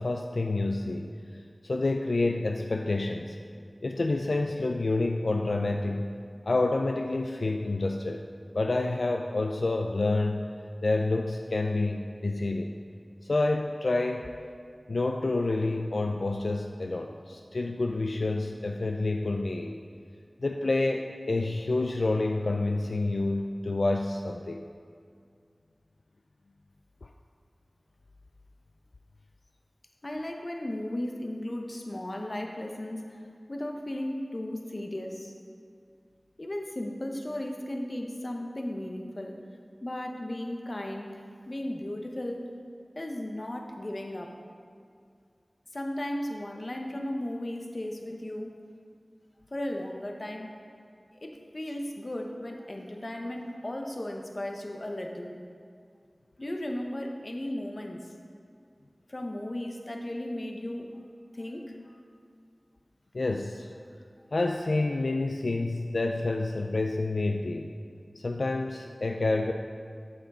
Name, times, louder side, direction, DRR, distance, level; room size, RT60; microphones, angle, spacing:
voice 1, 0.0-3.4 3.8-6.1 6.5-8.3 8.5-10.5 10.8-12.8 13.2-14.2 14.9-19.8 20.4-24.6 27.0-27.1 63.1-63.7 64.3-67.7 68.2-69.5, left 2 dB, 80° left, 3 dB, 0.3 m, -28 dB
voice 2, 30.0-33.2 33.5-35.3 36.4-39.4 39.8-41.2 41.5-42.5 43.0-44.4 45.7-48.5 49.5-50.5 51.2-55.4 56.4-58.1 59.1-61.0 61.3-62.0, left 1 dB, 45° left, 2 dB, 0.9 m, -35 dB
7.9 x 6.9 x 4.2 m, 2.2 s
wide cardioid pair, 55°, 0 cm